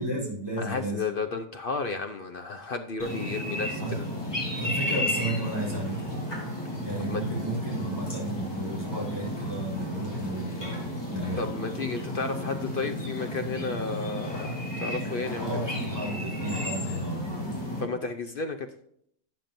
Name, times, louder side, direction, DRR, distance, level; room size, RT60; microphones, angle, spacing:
voice 1, 0.0-1.0 3.8-4.0 4.5-6.1 6.8-11.4 15.4-17.5, right 1 dB, 15° right, -4 dB, 3.7 m, -33 dB
voice 2, 0.6-3.8 7.1-7.2 11.4-14.4 14.8-15.5 17.8-18.7, left 4 dB, 65° left, 6 dB, 0.5 m, -32 dB
sound 1, 3.0-17.8, left 1 dB, 15° left, 3.7 m, -33 dB
12.0 x 9.0 x 2.6 m, 0.68 s
omnidirectional pair, 1.7 m